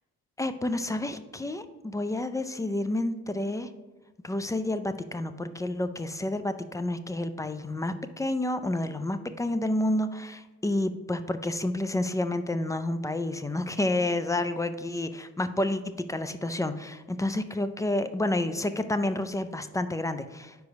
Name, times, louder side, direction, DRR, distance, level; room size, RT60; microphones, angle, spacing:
voice 1, 0.4-3.7 4.2-15.8 16.1-20.5, left 1 dB, 10° left, 10 dB, 0.3 m, -29 dB
4.9 x 4.7 x 5.2 m, 1.2 s
cardioid pair, 90°, 30 cm